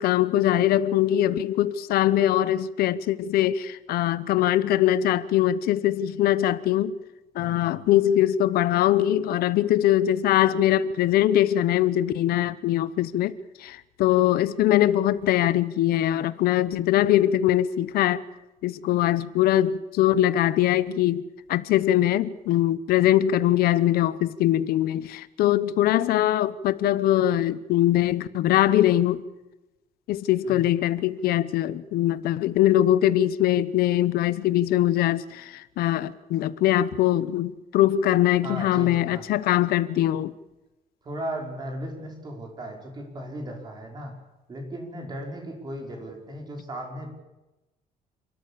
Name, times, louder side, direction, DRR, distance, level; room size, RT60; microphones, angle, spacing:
voice 1, 0.0-6.9 7.3-18.2 18.6-21.2 21.5-29.2 30.1-40.3, left 13 dB, 85° left, 0.9 m, -22 dB
voice 2, 7.4-7.8 30.4-30.6 38.4-39.2 41.0-44.2 44.5-47.1, right 1 dB, 25° right, 5.2 m, -36 dB
28.5 x 13.5 x 8.5 m
cardioid pair, 170°, 15 cm